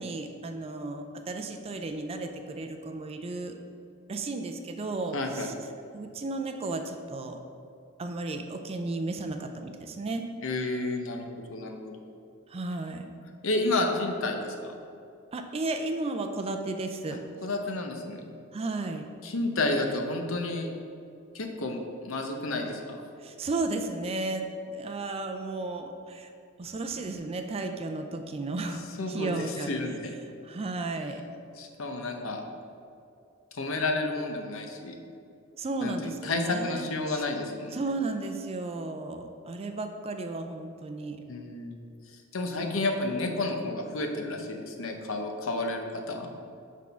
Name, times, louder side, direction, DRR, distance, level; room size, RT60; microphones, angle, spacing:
voice 1, 0.0-3.6 4.1-5.5 5.9-7.4 8.0-10.3 12.5-13.1 15.3-17.2 18.5-19.1 23.2-26.3 26.6-29.7 30.4-31.2 35.6-37.2 37.7-41.2, right 2 dB, 30° right, 5 dB, 0.4 m, -34 dB
voice 2, 5.1-5.5 10.4-11.9 13.4-14.7 17.4-18.3 19.2-20.7 21.3-23.0 29.0-30.1 31.6-32.4 33.5-35.0 35.8-37.8 41.3-41.8 42.1-46.3, left 2 dB, 65° left, 4 dB, 0.7 m, -31 dB
6.1 x 3.6 x 5.6 m, 2.6 s
head